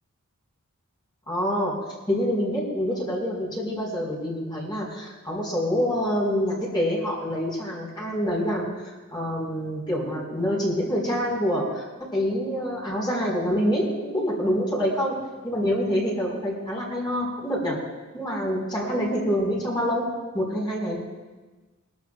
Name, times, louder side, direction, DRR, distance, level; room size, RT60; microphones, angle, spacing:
voice 1, 1.3-1.7 2.1-11.8 12.1-15.1 15.4-17.8 18.1-20.0 20.3-21.0, equal, 20° left, -4 dB, 4.0 m, -26 dB
23.0 x 12.5 x 2.2 m, 1.3 s
head